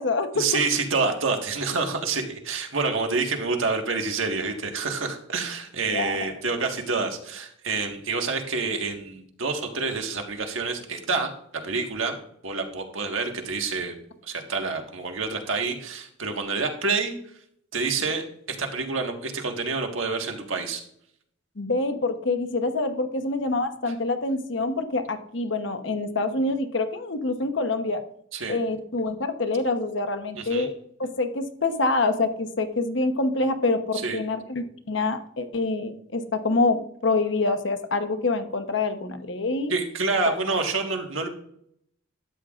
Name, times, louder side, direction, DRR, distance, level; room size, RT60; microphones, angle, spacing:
voice 1, 0.3-11.3 11.6-12.2 12.4-13.9 14.2-17.1 17.7-20.8 28.3-28.6 30.4-30.7 33.9-34.2 39.7-41.3, right 4 dB, 75° right, 3 dB, 1.6 m, -28 dB
voice 2, 5.9-6.3 21.6-28.0 28.5-30.7 31.0-39.7 40.3-40.4, left 3 dB, 60° left, 8 dB, 1.0 m, -26 dB
12.5 x 8.9 x 2.5 m, 0.68 s
head